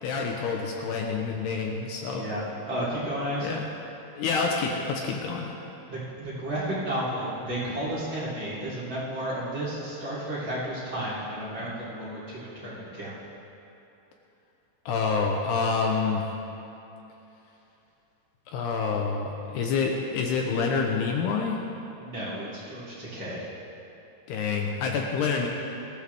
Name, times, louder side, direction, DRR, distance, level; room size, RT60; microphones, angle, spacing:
voice 1, 0.0-2.2 3.4-3.7 4.2-5.5 14.9-16.3 18.5-21.6 24.3-25.5, left 5 dB, 75° left, 1 dB, 2.8 m, -27 dB
voice 2, 2.7-3.7 5.9-13.2 22.0-23.4, right 1 dB, 30° right, -9 dB, 3.9 m, -32 dB
19.5 x 16.0 x 3.6 m, 2.9 s
omnidirectional pair, 5.1 m